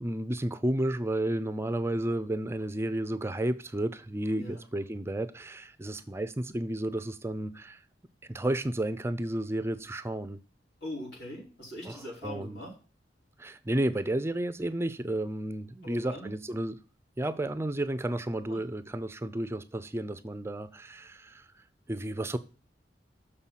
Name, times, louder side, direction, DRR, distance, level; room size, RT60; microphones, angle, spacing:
voice 1, 0.0-7.8 8.3-10.4 11.9-12.0 12.2-12.6 13.4-16.8 17.2-21.5 21.9-22.4, right 1 dB, 15° right, 0.4 m, -32 dB
voice 2, 10.8-12.7 15.8-16.3 18.5-18.6, left 1 dB, 70° left, 4.9 m, -41 dB
6.7 x 5.6 x 7.3 m
head